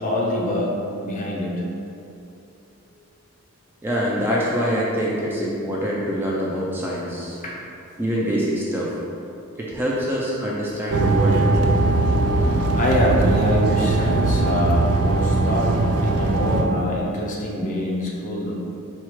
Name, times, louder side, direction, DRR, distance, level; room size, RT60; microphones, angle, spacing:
voice 1, 0.0-1.6 5.2-5.3 7.4-7.6 12.4-15.7 16.0-18.5, left 1 dB, 35° left, -3 dB, 0.6 m, -25 dB
voice 2, 3.8-7.4 8.0-8.9 9.6-11.7, equal, 10° right, -6 dB, 0.4 m, -25 dB
sound 1, 10.9-16.6, right 2 dB, 75° right, 0.4 m, -20 dB
4.4 x 2.4 x 4.5 m, 2.6 s
head